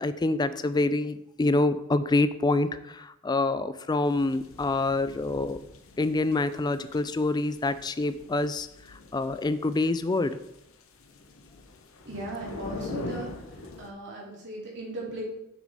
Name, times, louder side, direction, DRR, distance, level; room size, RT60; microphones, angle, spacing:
voice 1, 0.0-5.6 6.0-10.4, left 2 dB, 20° left, 13 dB, 0.3 m, -26 dB
sound 1, 4.0-13.9, left 2 dB, 65° left, 0.8 m, -43 dB
voice 2, 12.0-13.3 13.8-15.2, right 1 dB, 55° right, -3 dB, 2.4 m, -37 dB
6.9 x 6.0 x 4.1 m, 0.83 s
head